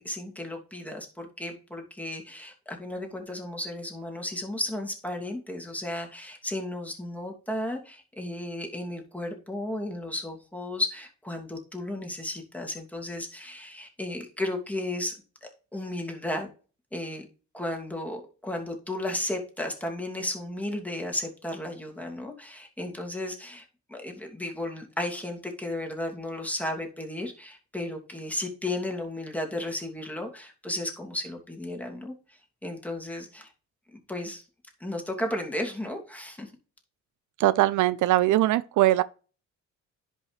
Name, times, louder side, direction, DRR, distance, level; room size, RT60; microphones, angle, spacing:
voice 1, 0.0-15.1 15.4-16.5 16.9-17.3 17.5-33.5 33.9-34.4 34.8-36.5, left 1 dB, 5° left, 2.6 m, -34 dB
voice 2, 37.4-39.0, right 15 dB, 80° right, 0.5 m, -21 dB
10.5 x 5.4 x 3.3 m
cardioid pair, 90°, 30 cm